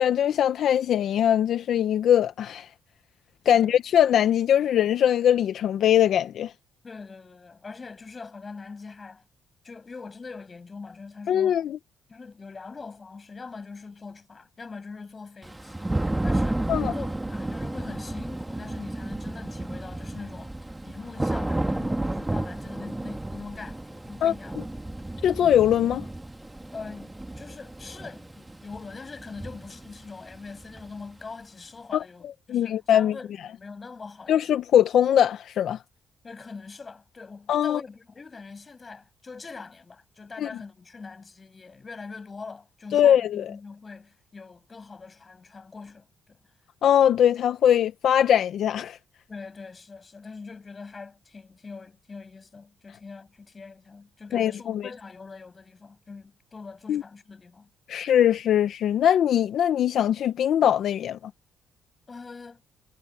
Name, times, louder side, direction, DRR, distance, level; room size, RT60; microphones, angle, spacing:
voice 1, 0.0-2.7 3.4-6.5 11.3-11.8 16.7-16.9 24.2-24.3 25.2-26.0 31.9-33.1 34.3-35.8 37.5-37.8 40.4-40.5 42.9-43.4 46.8-49.0 54.3-54.8 56.9-57.0 57.9-61.2, left 10 dB, 70° left, 0.9 m, -21 dB
voice 2, 6.8-9.2 9.6-11.7 12.1-24.6 26.7-34.5 36.2-46.4 49.3-57.7 62.1-62.6, left 4 dB, 30° left, 7.3 m, -43 dB
Thunder / Rain, 15.4-31.2, right 1 dB, 10° right, 1.8 m, -32 dB
cardioid pair, 90°, 0 cm